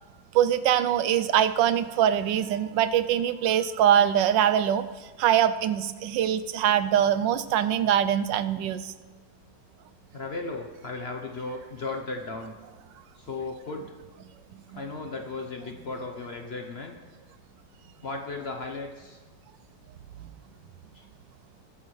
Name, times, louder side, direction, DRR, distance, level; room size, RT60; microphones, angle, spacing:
voice 1, 0.3-4.8 5.2-8.8 14.7-14.8, right 10 dB, 85° right, 12 dB, 1.3 m, -23 dB
voice 2, 10.1-12.5 13.2-13.9 14.7-17.0 18.0-19.2 20.9-21.0, left 3 dB, 45° left, 3 dB, 0.8 m, -35 dB
22.0 x 9.4 x 3.2 m, 1.3 s
omnidirectional pair, 1.9 m